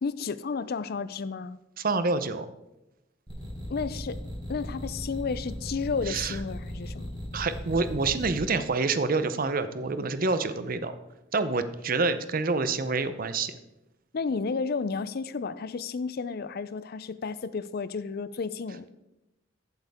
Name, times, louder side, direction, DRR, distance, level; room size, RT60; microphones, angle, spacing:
voice 1, 0.0-1.6 3.7-4.2 4.5-7.1 14.1-18.9, left 4 dB, 50° left, 15 dB, 0.4 m, -32 dB
voice 2, 1.8-2.5 6.1-6.4 7.3-11.0 11.3-13.6, right 3 dB, 45° right, 12 dB, 0.7 m, -27 dB
sound 1, 3.3-8.4, left 1 dB, 25° right, 4.4 m, -38 dB
15.0 x 8.1 x 3.6 m, 0.93 s
head